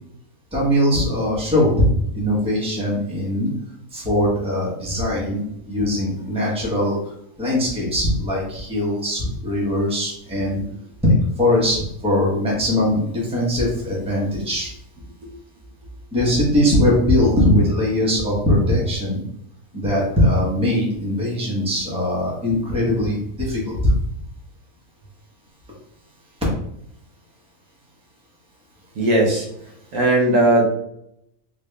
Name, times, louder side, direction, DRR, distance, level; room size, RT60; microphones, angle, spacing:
voice 1, 0.5-1.9 2.1-3.5 3.9-5.4 5.7-7.0 7.4-10.6 11.0-14.7 16.1-19.2 19.7-23.9, left 1 dB, 5° right, -5 dB, 0.9 m, -20 dB
voice 2, 28.9-29.5 29.9-30.6, right 2 dB, 65° right, -1 dB, 1.1 m, -17 dB
3.7 x 2.6 x 3.3 m, 0.76 s
omnidirectional pair, 1.5 m